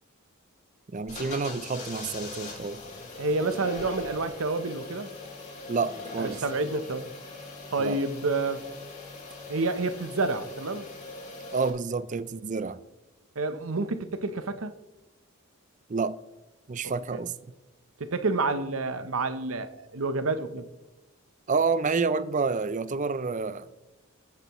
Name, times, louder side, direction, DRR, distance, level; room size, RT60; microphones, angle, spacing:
voice 1, 0.9-2.8 5.7-6.4 7.8-8.0 11.5-12.8 15.9-16.2 16.7-17.3 21.5-23.7, right 4 dB, 35° right, 0.4 m, -29 dB
sound 1, 1.1-11.7, left 3 dB, 30° left, 3.7 m, -41 dB
voice 2, 3.1-5.1 6.2-7.1 7.7-8.6 9.5-10.9 13.4-14.7 18.0-20.7, right 3 dB, 70° right, 0.8 m, -29 dB
20.5 x 8.1 x 3.1 m
head